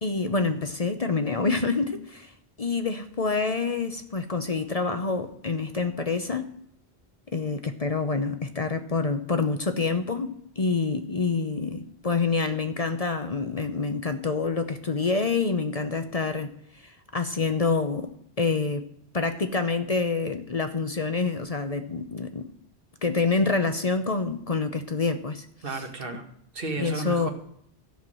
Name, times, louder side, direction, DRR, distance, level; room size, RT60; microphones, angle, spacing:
voice 1, 0.0-2.3 2.6-6.5 7.3-10.3 10.6-16.5 16.8-18.1 18.4-18.9 19.1-22.4 23.0-25.8 26.8-27.3, left 4 dB, 40° left, 8 dB, 0.8 m, -27 dB
voice 2, 25.6-26.3 26.5-27.3, right 3 dB, 60° right, 5 dB, 1.6 m, -33 dB
13.5 x 5.9 x 7.6 m, 0.69 s
omnidirectional pair, 1.0 m